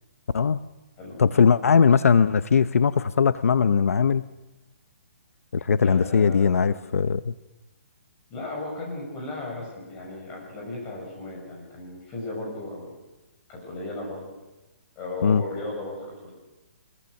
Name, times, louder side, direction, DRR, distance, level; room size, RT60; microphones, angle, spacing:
voice 1, 1.2-4.2 5.5-7.3 15.2-15.4, left 6 dB, 80° left, 14 dB, 0.7 m, -20 dB
voice 2, 5.8-6.9 8.3-13.0 13.5-14.3 15.0-16.3, left 2 dB, 15° left, -1 dB, 6.2 m, -36 dB
23.0 x 22.0 x 6.4 m, 1.1 s
hypercardioid pair, 175°, 8 cm